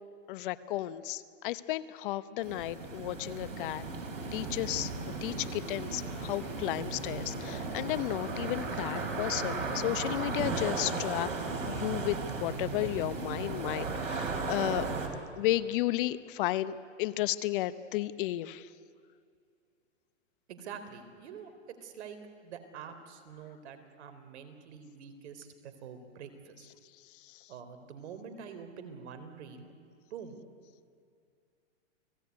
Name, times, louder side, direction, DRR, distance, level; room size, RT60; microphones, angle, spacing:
voice 1, 0.3-3.8 4.3-4.9 5.2-11.3 11.7-14.9 15.4-16.7 17.0-18.7, left 15 dB, 45° left, 15 dB, 1.0 m, -33 dB
sound 1, 2.4-15.1, right 3 dB, 85° right, 5.1 m, -36 dB
voice 2, 20.5-21.5 21.8-26.7 27.5-29.7 30.1-30.4, right 7 dB, 60° right, 9 dB, 3.9 m, -46 dB
30.0 x 19.0 x 9.6 m, 2.3 s
hypercardioid pair, 135°, 37 cm